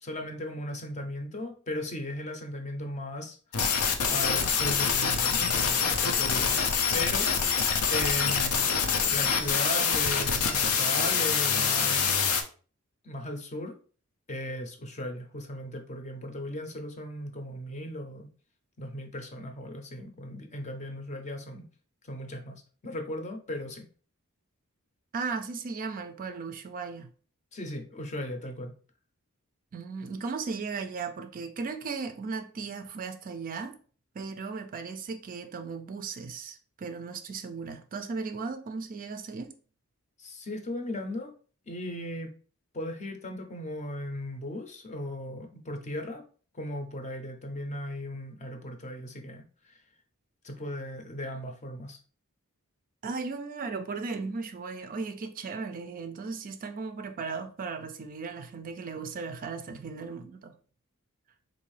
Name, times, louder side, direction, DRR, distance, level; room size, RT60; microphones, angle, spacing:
voice 1, 0.0-3.4 4.1-7.6 7.9-8.8 9.1-12.3 13.0-13.7 14.3-18.3 18.8-21.6 22.0-23.8 27.5-28.7 40.2-41.3 41.7-42.3 42.7-46.2 46.5-49.8 50.4-52.0, left 1 dB, 35° left, 0.6 m, -37 dB
sound 1, 3.5-12.4, left 6 dB, 90° left, 0.6 m, -25 dB
voice 2, 25.1-27.1 29.7-33.8 34.1-39.5 53.0-60.5, right 4 dB, 40° right, 0.4 m, -36 dB
3.8 x 2.6 x 3.1 m
head